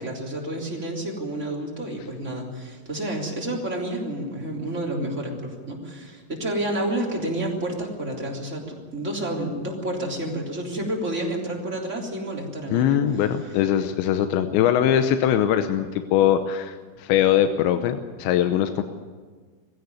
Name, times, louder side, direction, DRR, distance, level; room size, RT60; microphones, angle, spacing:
voice 1, 0.0-13.0, right 1 dB, 15° right, -2 dB, 2.8 m, -30 dB
voice 2, 12.7-18.8, left 10 dB, 80° left, 8 dB, 2.7 m, -21 dB
20.5 x 16.0 x 9.7 m, 1.5 s
omnidirectional pair, 6.0 m